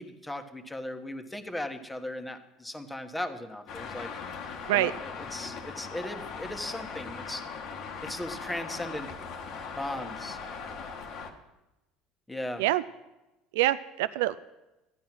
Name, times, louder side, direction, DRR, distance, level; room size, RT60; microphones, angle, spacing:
voice 1, 0.0-4.1 4.7-7.4 8.0-9.1 9.8-10.4 12.3-12.6, left 1 dB, 10° left, 7 dB, 1.3 m, -37 dB
Traffic noise roadway noise, 3.7-11.3, left 5 dB, 65° left, 1.5 m, -39 dB
voice 2, 13.5-14.4, right 15 dB, 85° right, 15 dB, 0.3 m, -25 dB
13.5 x 9.4 x 6.1 m, 1.0 s
supercardioid pair, 90°, 0 cm